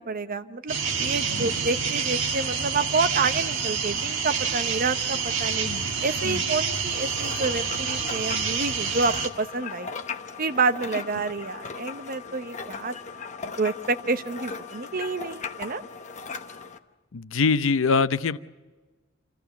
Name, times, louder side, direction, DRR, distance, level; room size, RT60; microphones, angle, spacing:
voice 1, 0.0-5.7 6.0-9.9 10.4-13.3 13.6-15.8, right 4 dB, 45° right, 10 dB, 0.8 m, -28 dB
sound 1, 0.7-9.3, right 6 dB, 70° right, 1.5 m, -28 dB
voice 2, 1.3-1.6 5.6-5.9 6.2-6.5 17.1-18.4, left 4 dB, 85° left, 14 dB, 0.6 m, -24 dB
sound 2, 6.9-16.8, left 5 dB, 40° left, 0.9 m, -38 dB
27.5 x 14.5 x 7.1 m, 1.3 s
head